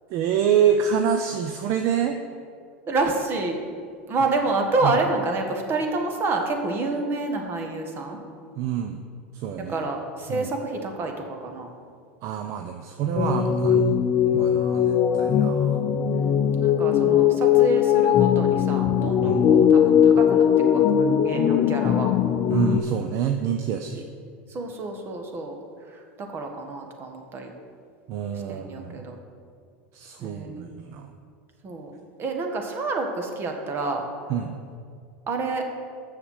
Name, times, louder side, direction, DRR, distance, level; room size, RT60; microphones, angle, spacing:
voice 1, 0.1-2.2 4.8-4.9 8.6-9.0 9.3-9.8 10.3-10.5 12.2-14.0 14.3-15.8 19.2-19.4 22.5-24.1 28.1-29.0 29.9-31.1 34.3-34.5, right 8 dB, 55° right, 6 dB, 0.6 m, -26 dB
voice 2, 2.9-3.6 4.1-8.2 9.7-11.7 16.1-22.1 24.5-25.6 25.9-27.5 28.5-29.2 30.2-30.7 31.6-31.9 32.2-34.0 35.3-35.6, right 3 dB, 35° right, 4 dB, 1.5 m, -28 dB
sound 1, 13.1-22.8, left 9 dB, 40° left, 0.6 m, -20 dB
7.0 x 6.7 x 7.3 m, 2.2 s
hypercardioid pair, 105°, 6 cm